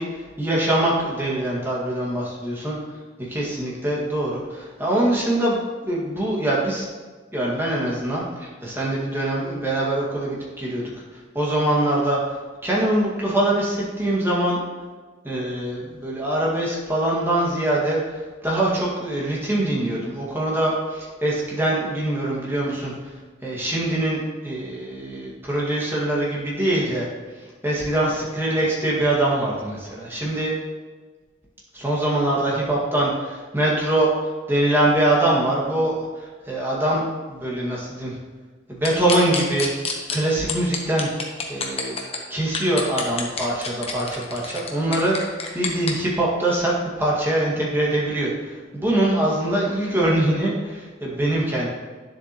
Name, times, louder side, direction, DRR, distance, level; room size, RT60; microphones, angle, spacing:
voice 1, 0.0-2.8 3.3-6.9 7.3-10.8 11.1-12.2 12.6-14.6 15.2-23.1 23.4-27.1 27.6-30.5 31.7-34.1 34.5-38.2 38.7-39.7 40.1-41.1 41.5-42.0 42.3-51.7, right 1 dB, 10° right, -5 dB, 1.9 m, -23 dB
sound 1, 38.8-40.2 40.5-42.2 42.5-45.9, left 5 dB, 30° left, 1.0 m, -27 dB
9.8 x 7.3 x 3.0 m, 1.4 s
head